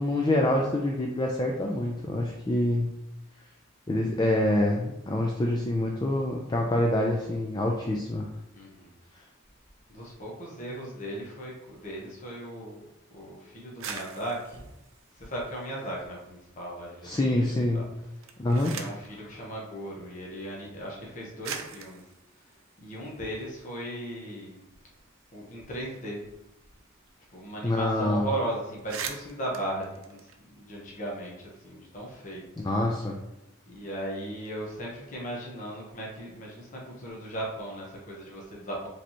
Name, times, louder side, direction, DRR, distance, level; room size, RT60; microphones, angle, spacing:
voice 1, 0.0-2.9 3.9-8.3 17.0-17.8 18.4-18.7 27.6-28.3 32.6-33.1, left 1 dB, 20° left, 0 dB, 0.4 m, -26 dB
voice 2, 8.5-8.9 9.9-12.8 13.1-14.7 15.1-17.9 18.5-22.0 22.5-24.6 25.3-26.2 27.3-32.5 33.7-38.9, right 1 dB, 40° left, -4 dB, 1.1 m, -37 dB
sound 1, 13.6-16.2 16.6-17.3 18.1-19.1 20.2-20.3 21.0-21.1 21.4-23.7 24.1-24.2 24.5-27.1 27.3-27.5 27.8-28.0 28.4-28.5 28.7-30.9, right 7 dB, 75° right, 0.6 m, -43 dB
5.0 x 3.4 x 2.9 m, 0.93 s
head